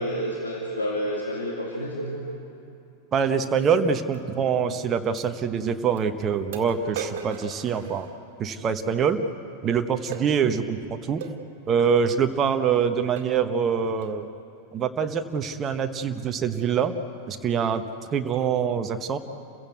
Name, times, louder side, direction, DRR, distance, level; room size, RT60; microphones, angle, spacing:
voice 1, 0.0-2.3, equal, 75° left, -2 dB, 2.4 m, -29 dB
voice 2, 3.1-8.1 8.4-9.2 9.6-11.2 11.7-14.3 14.7-16.9 17.3-17.8 18.1-19.2, right 7 dB, 25° right, 7 dB, 1.1 m, -24 dB
sound 1, 4.1-4.2 5.2-5.3 6.0-6.1 6.5-8.5 10.1-10.3 11.2-11.4 12.2-12.3 12.7-12.9 13.2-13.5 14.0-14.2, right 7 dB, 55° right, 2.0 m, -37 dB
29.0 x 16.0 x 8.2 m, 2.8 s
figure-of-eight pair, 90°, 0 cm